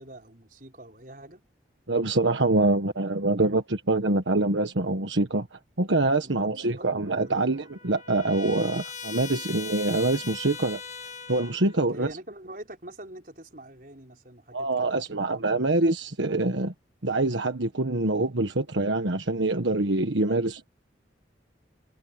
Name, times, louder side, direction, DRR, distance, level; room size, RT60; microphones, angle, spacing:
voice 1, 0.0-1.4 6.2-6.9 7.3-7.5 11.9-15.2 20.3-20.4, right 1 dB, 45° right, 5.3 m, -44 dB
voice 2, 1.9-10.8 11.3-12.1 14.5-16.7 17.0-20.7, right 2 dB, 85° right, 1.5 m, -25 dB
Trumpet, 7.1-11.8, left 6 dB, 40° left, 1.7 m, -40 dB
head